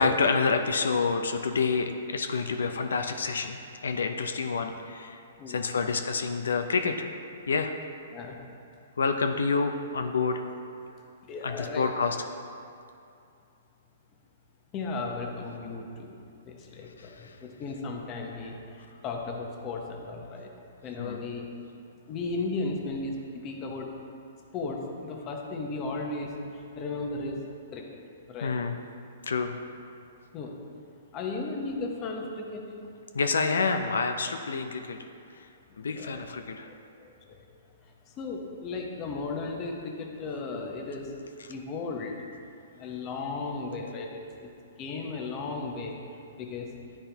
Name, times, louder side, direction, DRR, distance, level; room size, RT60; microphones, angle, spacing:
voice 1, 0.0-5.2 5.5-7.1 7.5-7.7 9.0-10.4 11.4-12.2 21.0-21.2 28.4-28.8 29.3-29.5 33.1-35.0 35.8-36.7, left 4 dB, 90° left, 6 dB, 0.4 m, -28 dB
voice 2, 5.4-5.9 8.1-8.4 11.2-11.9 14.7-16.1 16.5-20.5 20.8-21.5 22.1-23.9 24.5-27.4 27.7-28.0 28.3-28.6 30.3-30.5 31.1-32.6 35.9-36.3 36.7-37.4 38.2-41.1 41.5-42.2 42.8-44.5 44.8-46.0 46.4-46.7, left 3 dB, 25° left, 1 dB, 0.8 m, -35 dB
10.5 x 4.3 x 3.4 m, 2.5 s
hypercardioid pair, 145°, 0 cm